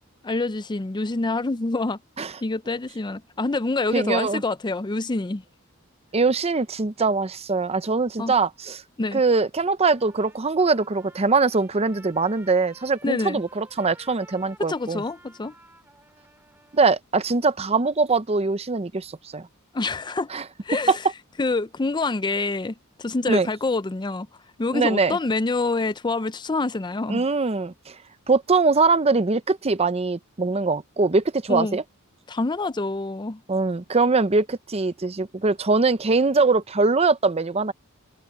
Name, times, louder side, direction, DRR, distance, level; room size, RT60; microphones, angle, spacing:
voice 1, 0.2-2.0 2.4-5.4 8.2-8.3 9.0-9.2 13.0-13.4 14.7-15.5 19.7-20.3 20.6-21.0 21.4-24.3 24.6-27.2 31.5-31.8 32.3-33.4, left 3 dB, 20° left, 0.5 m, -26 dB
voice 2, 3.9-4.4 6.1-8.8 9.1-15.0 16.7-19.5 20.3-20.4 20.9-21.0 23.3-23.5 24.7-25.2 27.1-28.0 28.3-31.8 33.5-37.7, right 3 dB, 30° right, 0.7 m, -22 dB
Trumpet, 9.9-17.0, right 1 dB, 10° right, 6.0 m, -52 dB
head